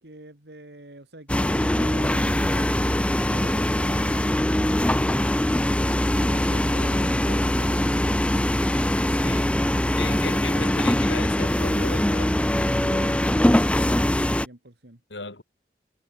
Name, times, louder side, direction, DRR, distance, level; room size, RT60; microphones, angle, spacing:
voice 1, 0.0-8.2 12.8-13.5 14.1-15.0, right 1 dB, 65° right, 2.8 m, -44 dB
sound 1, 1.3-14.5, left 1 dB, 5° left, 0.5 m, -22 dB
voice 2, 9.1-9.5 9.9-12.6 15.1-15.4, left 3 dB, 85° left, 4.9 m, -36 dB
head